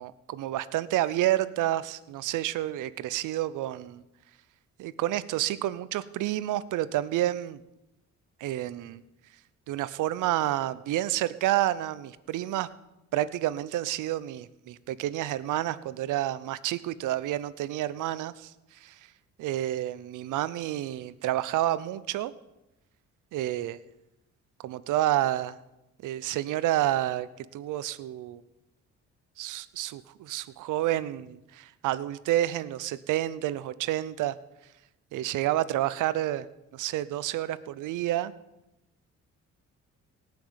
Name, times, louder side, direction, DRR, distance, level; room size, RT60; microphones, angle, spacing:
voice 1, 0.0-4.0 4.8-7.6 8.4-9.0 9.7-12.7 13.1-18.5 18.8-19.0 19.4-22.3 23.3-23.8 24.6-25.6 26.0-27.3 27.5-28.4 29.4-34.4 35.1-36.5 36.7-38.3, right 14 dB, 85° right, 16 dB, 0.8 m, -29 dB
18.0 x 6.2 x 8.9 m, 0.93 s
cardioid pair, 90°, 30 cm